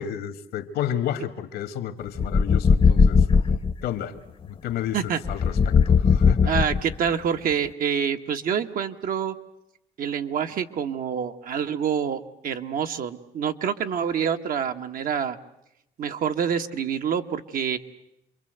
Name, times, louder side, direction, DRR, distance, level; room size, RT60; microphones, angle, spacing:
voice 1, 0.0-3.5 3.8-4.2 4.4-6.5, left 10 dB, 80° left, 9 dB, 1.9 m, -31 dB
sound 1, 2.2-3.7 5.2-7.1, left 5 dB, 35° left, 1.0 m, -19 dB
voice 2, 6.5-9.3 10.0-15.4 16.0-17.8, right 7 dB, 55° right, 6 dB, 1.4 m, -27 dB
27.5 x 23.0 x 8.0 m, 0.82 s
cardioid pair, 110°, 17 cm